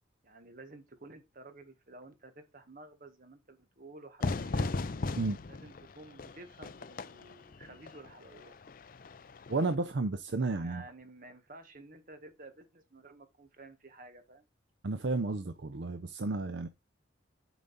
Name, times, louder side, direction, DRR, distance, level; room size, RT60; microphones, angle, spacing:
voice 1, 0.2-4.7 5.5-8.6 10.6-14.4, right 2 dB, 45° right, 1.5 m, -52 dB
Fire / Fireworks, 4.2-9.7, left 3 dB, 45° left, 0.5 m, -37 dB
voice 2, 9.5-10.8 14.8-16.7, right 3 dB, 65° right, 0.6 m, -32 dB
7.1 x 5.1 x 4.0 m
head